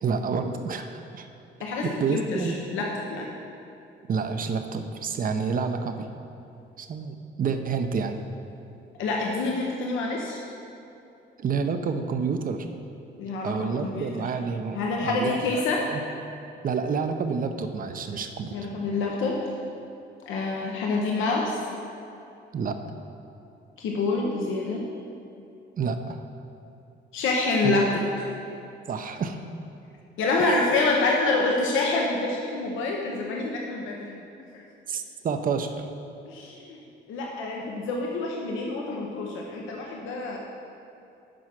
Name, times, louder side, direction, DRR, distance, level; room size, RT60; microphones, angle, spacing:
voice 1, 0.0-1.3 1.8-2.6 4.1-6.1 6.8-8.2 11.4-12.7 13.4-15.6 15.9-16.0 16.6-18.6 22.5-22.8 25.8-26.2 27.6-27.8 28.9-29.4 30.4-30.7 34.9-35.8, right 5 dB, 45° right, 7 dB, 0.6 m, -29 dB
voice 2, 1.6-3.3 9.0-10.4 13.2-14.3 14.7-15.9 18.5-19.5 20.3-21.6 23.8-24.9 27.1-28.0 30.2-34.2 34.5-34.6 36.3-36.8 37.1-40.4, left 3 dB, 85° left, -1 dB, 0.8 m, -27 dB
7.6 x 4.9 x 5.9 m, 2.8 s
cardioid pair, 90°, 20 cm